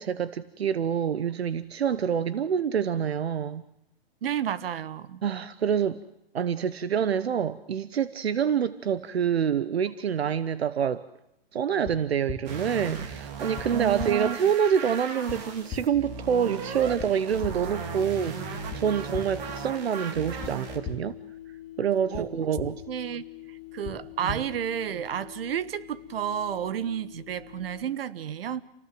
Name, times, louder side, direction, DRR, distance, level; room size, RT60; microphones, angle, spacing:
voice 1, 0.0-3.6 5.2-6.0 6.3-11.1 11.5-21.2 21.8-22.8 24.2-24.4 27.1-27.2, right 8 dB, 85° right, 15 dB, 1.0 m, -27 dB
voice 2, 4.2-5.2 13.7-14.4 22.1-22.5 22.9-23.2 23.7-28.6, right 9 dB, 70° right, 16 dB, 1.4 m, -31 dB
sound 1, 11.8-11.9 12.3-12.4 13.6-13.7 14.0-14.1 15.3-15.4 15.7-15.8 17.0-17.1 17.4-17.5 18.7-18.8 19.1-19.2 20.4-20.5 20.8-20.9 22.1-22.2 22.6-22.7 23.8-23.9 24.3-24.4, left 10 dB, 25° left, 3.0 m, -35 dB
sound 2, 12.4-20.8, right 6 dB, 40° right, 3.6 m, -37 dB
sound 3, 13.7-27.8, left 13 dB, 60° left, 2.4 m, -46 dB
28.5 x 19.0 x 7.7 m, 0.82 s
hypercardioid pair, 135°, 31 cm